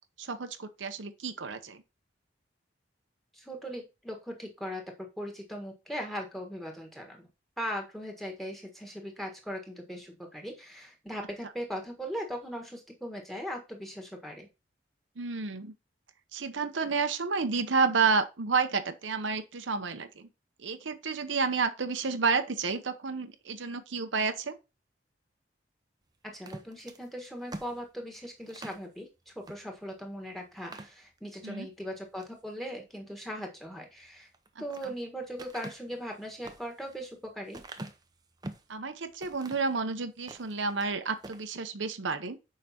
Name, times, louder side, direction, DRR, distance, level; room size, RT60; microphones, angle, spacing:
voice 1, 0.2-1.8 15.2-15.7 16.3-20.3 20.6-24.5 31.4-31.7 38.7-42.4, right 4 dB, 85° right, 0.9 m, -30 dB
voice 2, 3.3-7.3 7.6-14.5 26.3-34.3 34.6-37.6, equal, ahead, 1.5 m, -39 dB
sound 1, 26.3-28.9 29.4-29.6 30.0-30.1 30.5-31.5 32.0-32.4 34.2-34.9 35.4-38.7 39.2-39.8 40.2-40.9 41.2-41.5, right 2 dB, 20° right, 0.6 m, -45 dB
6.6 x 5.1 x 4.3 m
head